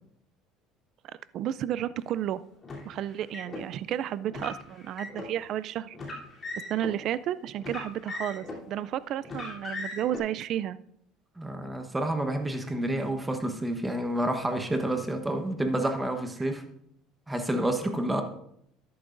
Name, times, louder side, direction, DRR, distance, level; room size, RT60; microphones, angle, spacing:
voice 1, 1.3-2.4 2.8-6.0 6.7-10.8, right 11 dB, 50° right, 17 dB, 0.4 m, -32 dB
Car, 2.6-3.6 4.3-5.3 5.9-6.9 7.6-8.7 9.2-10.2, left 2 dB, 25° left, 3.2 m, -38 dB
voice 2, 11.4-16.6 17.3-18.2, right 1 dB, 10° right, 6 dB, 1.1 m, -29 dB
13.0 x 11.0 x 2.6 m, 0.73 s
cardioid pair, 140°, 0 cm